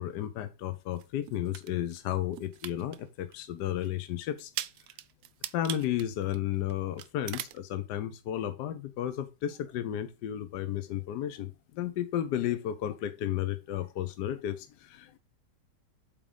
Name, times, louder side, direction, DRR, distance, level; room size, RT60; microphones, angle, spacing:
voice 1, 0.0-4.5 5.5-15.2, left 11 dB, 75° left, 1.3 m, -33 dB
sound 1, 1.0-2.0 2.3-3.0 3.3-3.4 3.8-3.9 4.4-6.7 7.0-7.6, right 12 dB, 70° right, 0.8 m, -39 dB
8.5 x 3.6 x 5.0 m
omnidirectional pair, 1.9 m